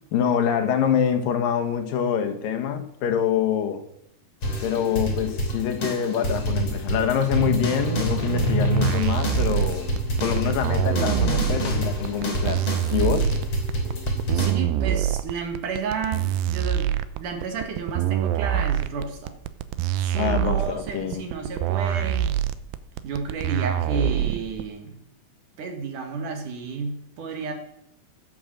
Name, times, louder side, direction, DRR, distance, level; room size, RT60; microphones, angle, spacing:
voice 1, 0.1-3.8 4.6-9.9 10.2-13.3 20.2-21.2, left 8 dB, 70° left, 2.7 m, -25 dB
sound 1, 4.4-14.5, right 1 dB, 40° left, 3.8 m, -26 dB
sound 2, 8.6-24.6, right 11 dB, 80° right, 2.4 m, -25 dB
voice 2, 14.3-16.9 17.2-19.3 20.0-22.3 23.0-25.0 25.6-27.5, right 5 dB, 60° right, 3.1 m, -31 dB
15.5 x 8.4 x 7.6 m
omnidirectional pair, 4.4 m